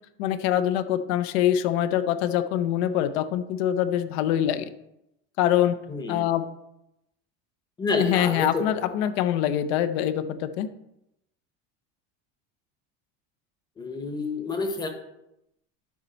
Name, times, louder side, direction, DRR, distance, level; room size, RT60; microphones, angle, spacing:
voice 1, 0.2-4.7 5.4-5.7 6.1-6.4 8.0-10.7, left 11 dB, 75° left, 11 dB, 0.6 m, -24 dB
voice 2, 5.9-6.3 7.8-8.9 13.8-14.9, left 3 dB, 15° left, 6 dB, 0.8 m, -29 dB
12.0 x 4.2 x 4.0 m, 0.85 s
cardioid pair, 170°, 32 cm